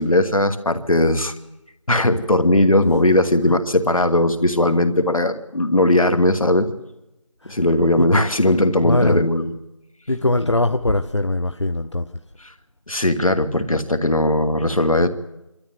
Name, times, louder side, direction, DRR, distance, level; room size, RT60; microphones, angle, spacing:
voice 1, 0.0-1.3 1.9-6.7 7.4-9.5 10.4-10.5 12.4-12.5 12.9-15.1, left 1 dB, 80° left, 8 dB, 2.5 m, -18 dB
voice 2, 8.8-9.2 10.1-12.1, left 2 dB, 55° left, 9 dB, 0.8 m, -21 dB
26.0 x 13.0 x 9.5 m, 0.95 s
figure-of-eight pair, 180°, 17 cm